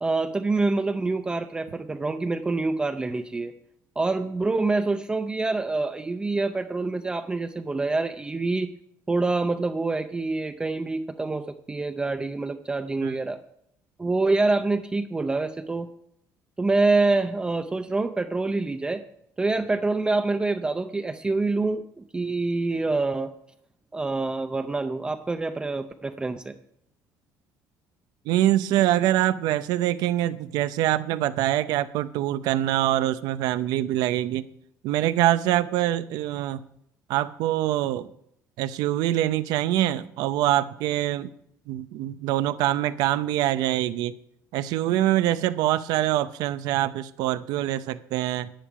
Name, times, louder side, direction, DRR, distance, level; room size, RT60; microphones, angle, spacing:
voice 1, 0.0-3.5 4.0-8.7 9.1-13.4 14.0-15.9 16.6-19.0 19.4-23.3 23.9-26.5, right 3 dB, 15° right, 8 dB, 0.5 m, -26 dB
voice 2, 28.3-34.5 34.8-36.6 37.1-38.1 38.6-41.3 41.7-44.1 44.5-48.5, right 13 dB, 80° right, 13 dB, 0.6 m, -24 dB
10.5 x 10.0 x 4.9 m, 0.72 s
cardioid pair, 140°, 7 cm